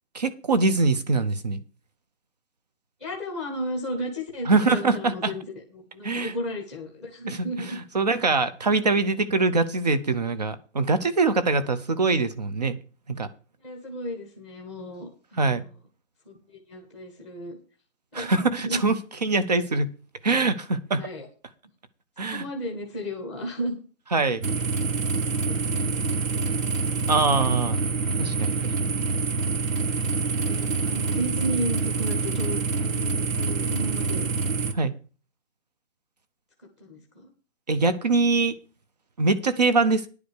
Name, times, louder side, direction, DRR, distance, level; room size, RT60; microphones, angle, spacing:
voice 1, 0.1-1.6 4.5-5.3 6.0-6.3 7.3-7.4 7.7-12.8 13.1-13.3 15.4-15.6 18.1-19.0 19.2-19.9 20.2-21.1 22.2-22.4 24.1-24.4 27.1-27.8 28.2-28.7 34.7-34.9 37.7-38.6 39.2-40.1, right 3 dB, 35° right, 13 dB, 0.8 m, -23 dB
voice 2, 3.0-7.8 13.6-15.7 16.2-17.6 18.1-18.8 20.9-21.3 22.3-23.8 25.0-26.6 30.5-34.3 36.8-37.3, equal, ahead, 0 dB, 0.9 m, -34 dB
sound 1, 24.4-34.7, right 4 dB, 90° right, 1.5 m, -26 dB
10.5 x 4.9 x 8.2 m, 0.37 s
hypercardioid pair, 180°, 38 cm